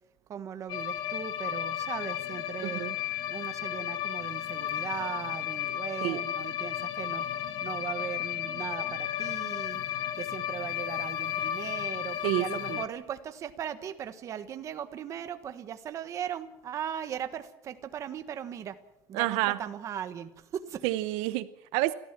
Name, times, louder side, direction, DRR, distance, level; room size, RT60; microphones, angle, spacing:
voice 1, 0.3-2.8 3.3-18.8 19.1-20.8, right 9 dB, 35° right, 10 dB, 1.3 m, -38 dB
sound 1, 0.7-12.9, left 11 dB, 55° left, 1.4 m, -34 dB
voice 2, 2.6-2.9 6.0-6.2 12.2-12.8 19.1-19.6 20.8-21.9, right 17 dB, 85° right, 14 dB, 0.9 m, -29 dB
29.5 x 14.0 x 7.4 m, 0.86 s
cardioid pair, 175°, 9 cm